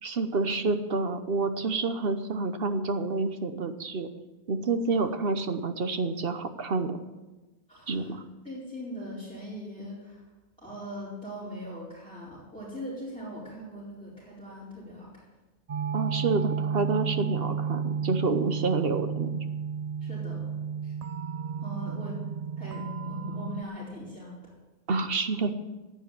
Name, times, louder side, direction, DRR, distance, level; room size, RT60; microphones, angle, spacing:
voice 1, 0.0-4.1 4.5-7.0 7.9-8.2 15.9-19.3 24.9-25.5, right 3 dB, 65° right, 9 dB, 1.1 m, -28 dB
voice 2, 7.7-8.1 8.4-10.2 10.6-15.3 20.0-20.9 21.6-22.2 22.6-24.5, equal, 5° left, -10 dB, 4.5 m, -41 dB
sound 1, 15.7-23.6, right 6 dB, 45° right, 0.5 m, -32 dB
12.0 x 9.2 x 9.1 m, 1.1 s
omnidirectional pair, 1.1 m